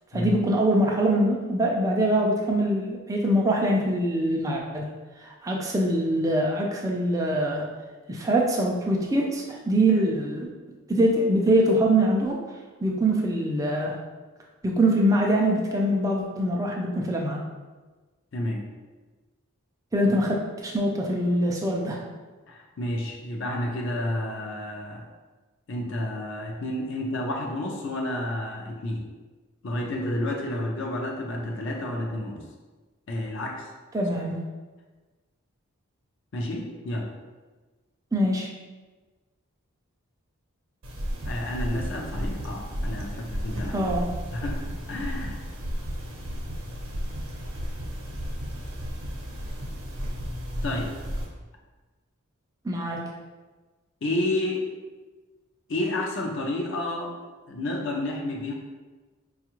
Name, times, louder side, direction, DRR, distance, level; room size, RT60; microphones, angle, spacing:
voice 1, 0.1-4.9 5.4-7.6 8.1-10.5 10.9-12.4 12.8-14.0 14.6-17.4 19.9-22.0 33.9-34.4 38.1-38.5 43.7-44.1 52.6-53.0, right 1 dB, 15° right, -1 dB, 0.3 m, -23 dB
voice 2, 18.3-18.6 22.5-25.0 25.7-29.1 29.6-32.4 33.1-33.7 36.3-37.1 41.2-43.9 44.3-45.4 50.6-50.9 54.0-54.7 55.7-57.1 57.5-58.5, left 1 dB, 55° left, 0 dB, 0.5 m, -30 dB
sound 1, 40.8-51.3, equal, 60° right, 0.8 m, -33 dB
4.7 x 2.4 x 2.9 m, 1.3 s
head